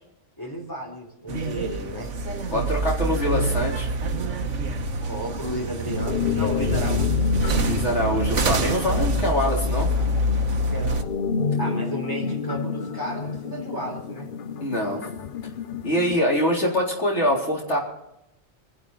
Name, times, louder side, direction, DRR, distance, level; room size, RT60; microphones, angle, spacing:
voice 1, 0.4-2.1 5.0-7.2 10.7-11.0 11.6-14.3, right 1 dB, 15° left, -1 dB, 3.5 m, -33 dB
sound 1, 1.3-11.0, right 1 dB, 80° right, 1.5 m, -25 dB
voice 2, 2.5-3.9 7.6-9.9 14.6-15.0 15.8-17.8, equal, 65° left, -3 dB, 4.3 m, -24 dB
sound 2, 5.9-16.2, left 6 dB, 50° left, 0.8 m, -30 dB
27.0 x 11.5 x 4.1 m, 0.87 s
omnidirectional pair, 1.2 m